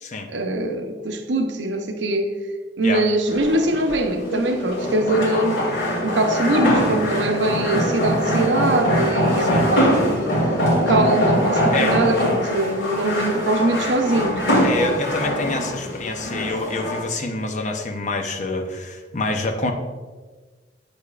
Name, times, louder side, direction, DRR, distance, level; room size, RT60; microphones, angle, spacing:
voice 1, 0.3-2.3 2.8-5.6 6.0-9.9 10.9-14.7, right 2 dB, 85° right, 0.7 m, -22 dB
sound 1, 3.3-17.0, equal, 70° left, 2.2 m, -22 dB
voice 2, 14.6-19.7, left 2 dB, 40° left, 0.7 m, -26 dB
8.5 x 6.6 x 2.4 m
head